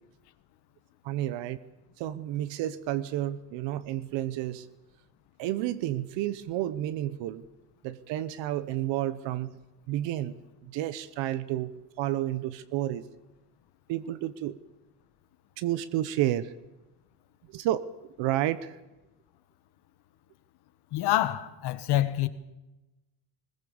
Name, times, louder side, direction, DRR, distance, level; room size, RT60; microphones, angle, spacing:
voice 1, 1.0-1.6 2.0-4.7 5.4-7.4 7.8-9.6 9.9-13.1 13.9-14.6 15.6-16.5 17.5-18.8, right 13 dB, 70° right, 1.1 m, -31 dB
voice 2, 20.9-22.3, left 14 dB, 60° left, 1.5 m, -26 dB
22.0 x 20.5 x 7.2 m
cardioid pair, 175°, 45 cm